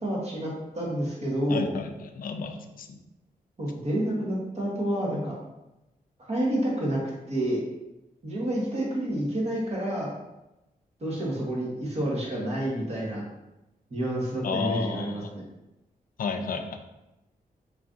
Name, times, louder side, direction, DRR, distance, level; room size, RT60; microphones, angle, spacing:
voice 1, 0.0-1.7 3.6-5.4 6.2-7.0 7.3-7.6 8.2-10.1 11.0-13.2 13.9-15.4, right 1 dB, 45° right, -4 dB, 1.3 m, -29 dB
voice 2, 1.5-3.0 14.4-15.3 16.2-16.8, left 5 dB, 70° left, 6 dB, 0.4 m, -32 dB
3.7 x 3.1 x 2.6 m, 0.96 s
cardioid pair, 75°, 15 cm